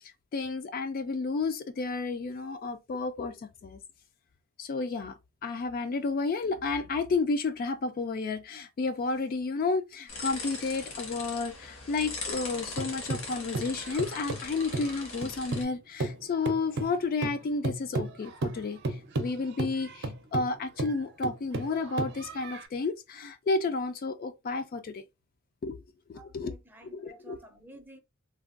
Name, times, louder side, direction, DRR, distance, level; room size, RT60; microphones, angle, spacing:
voice 1, 0.3-3.3 3.6-3.8 4.6-25.0 25.6-25.8 26.1-26.5 26.8-27.4, left 3 dB, 45° left, 0.3 m, -31 dB
sound 1, 10.1-15.6, left 3 dB, 80° left, 1.2 m, -40 dB
sound 2, 12.3-15.7 16.0-22.7, right 2 dB, 55° right, 0.6 m, -34 dB
voice 2, 26.1-28.0, right 2 dB, 10° right, 0.5 m, -52 dB
3.3 x 2.2 x 2.4 m
head